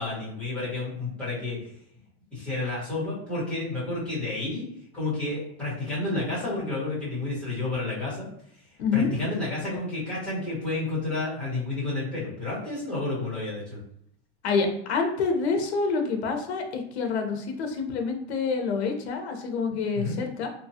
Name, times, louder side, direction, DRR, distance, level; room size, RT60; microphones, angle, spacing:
voice 1, 0.0-1.7 2.3-4.7 4.9-8.3 8.9-13.8 19.9-20.2, left 2 dB, 5° left, -11 dB, 1.2 m, -30 dB
voice 2, 8.8-9.1 14.4-20.5, left 4 dB, 80° left, 4 dB, 0.8 m, -27 dB
3.0 x 2.3 x 2.7 m, 0.71 s
supercardioid pair, 175°, 32 cm